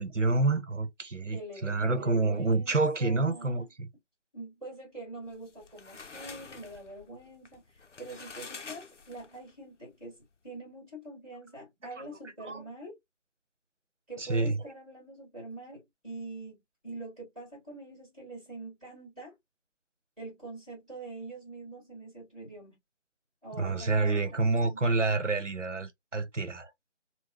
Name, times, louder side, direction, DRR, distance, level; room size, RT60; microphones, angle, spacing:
voice 1, 0.0-3.9 12.4-12.6 14.2-14.6 23.6-26.7, right 3 dB, 80° right, 0.9 m, -28 dB
voice 2, 1.3-3.7 4.3-13.0 14.1-19.4 20.2-22.8 23.4-24.8, right 2 dB, ahead, 1.6 m, -45 dB
sound 1, 5.3-9.5, left 4 dB, 80° left, 0.7 m, -47 dB
3.9 x 2.3 x 2.7 m
figure-of-eight pair, 160°, 36 cm